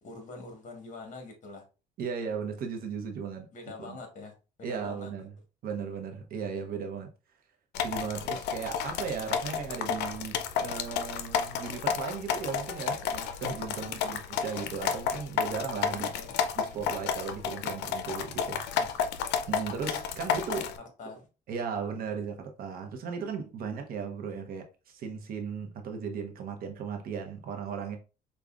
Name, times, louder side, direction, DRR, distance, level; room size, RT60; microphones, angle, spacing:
voice 1, 0.0-1.6 3.5-4.3 4.6-5.1 13.7-14.1 15.9-16.4 18.7-19.0 21.0-21.3, left 3 dB, 45° left, 1.3 m, -45 dB
voice 2, 2.0-3.5 3.9-4.0 4.6-5.3 5.6-7.1 7.8-16.1 16.5-18.9 19.5-20.7 21.5-28.0, right 6 dB, 60° right, 0.8 m, -36 dB
sound 1, 7.8-20.8, left 7 dB, 85° left, 0.5 m, -31 dB
5.1 x 2.3 x 2.3 m
cardioid pair, 110°, 17 cm